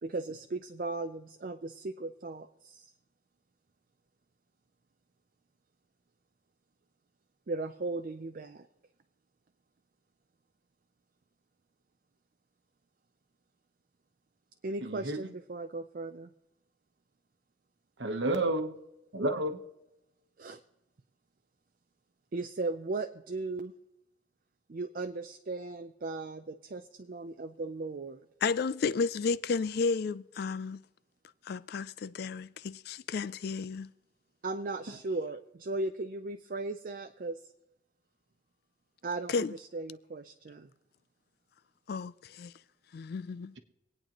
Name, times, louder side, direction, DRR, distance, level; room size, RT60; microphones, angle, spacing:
voice 1, 0.0-2.9 7.5-8.7 14.6-16.3 20.4-20.6 22.3-23.7 24.7-28.2 34.4-37.4 39.0-40.7, right 3 dB, 45° right, 0.5 m, -37 dB
voice 2, 14.8-15.3 18.0-18.8 19.1-19.6 34.9-35.0, right 1 dB, 60° right, 1.1 m, -31 dB
voice 3, 28.4-30.8 31.5-33.9 39.3-39.5 41.9-42.5 42.9-43.5, left 4 dB, 50° left, 0.3 m, -32 dB
24.5 x 9.0 x 3.0 m
head